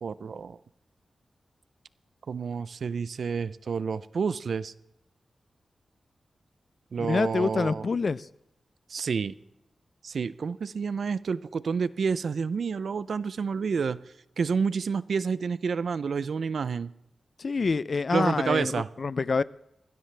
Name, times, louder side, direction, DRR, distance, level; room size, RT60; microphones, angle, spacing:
voice 1, 0.0-0.6 2.3-4.7 6.9-7.9 8.9-9.3 10.0-14.0 14.4-16.9 18.1-18.9, right 5 dB, 75° right, 0.5 m, -29 dB
voice 2, 7.0-8.3 17.4-19.4, left 4 dB, 55° left, 0.5 m, -27 dB
20.0 x 16.0 x 3.4 m
wide cardioid pair, 85°, 0 cm